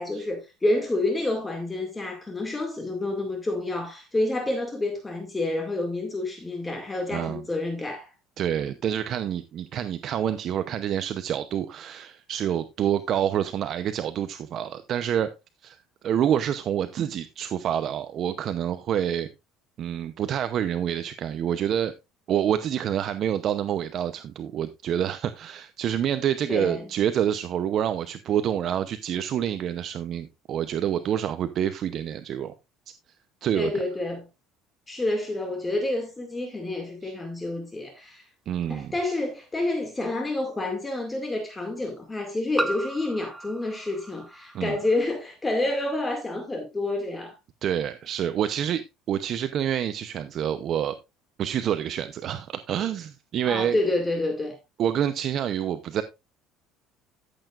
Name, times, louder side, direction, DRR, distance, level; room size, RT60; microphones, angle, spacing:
voice 1, 0.0-8.1 26.5-26.9 33.5-34.3 34.9-38.3 38.7-47.3 53.4-54.6, left 2 dB, 15° left, 2.1 m, -28 dB
voice 2, 7.1-7.4 8.4-15.3 15.6-15.8 16.0-19.3 19.8-21.9 22.3-32.5 33.4-33.7 37.0-37.1 38.5-38.9 44.5-44.8 47.6-51.0 51.4-53.8 54.8-56.0, right 9 dB, 50° right, 0.7 m, -27 dB
sound 1, 38.6-38.7 40.4-40.5 42.6-45.1, right 1 dB, 5° right, 0.7 m, -35 dB
13.5 x 8.0 x 2.5 m
cardioid pair, 115°, 0 cm